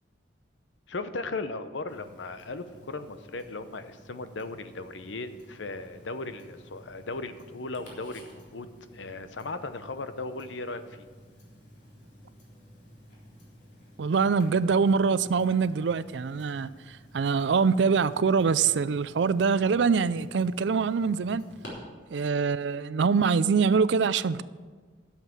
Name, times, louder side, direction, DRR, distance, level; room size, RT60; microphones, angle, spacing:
voice 1, 0.9-8.7 8.9-11.1, left 3 dB, 85° left, 0.8 m, -37 dB
Tick-tock, 1.9-21.7, equal, 65° left, 3.7 m, -53 dB
voice 2, 14.0-16.7 17.1-21.4 22.1-24.4, right 5 dB, 70° right, 0.4 m, -24 dB
11.5 x 7.3 x 7.3 m
head